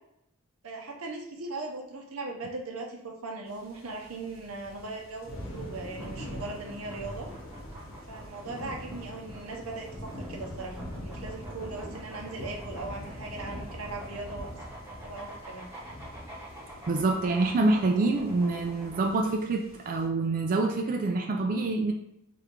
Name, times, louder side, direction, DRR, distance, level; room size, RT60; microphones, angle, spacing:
voice 1, 0.6-7.3 8.1-14.6 15.0-15.7, right 3 dB, 85° right, 1 dB, 0.8 m, -39 dB
sound 1, 3.5-20.0, equal, 75° left, 1.2 m, -43 dB
sound 2, 5.8-19.1, right 1 dB, 15° right, 1.0 m, -48 dB
voice 2, 16.9-21.9, right 3 dB, 40° right, 3 dB, 0.3 m, -26 dB
3.5 x 2.5 x 4.4 m, 0.80 s
head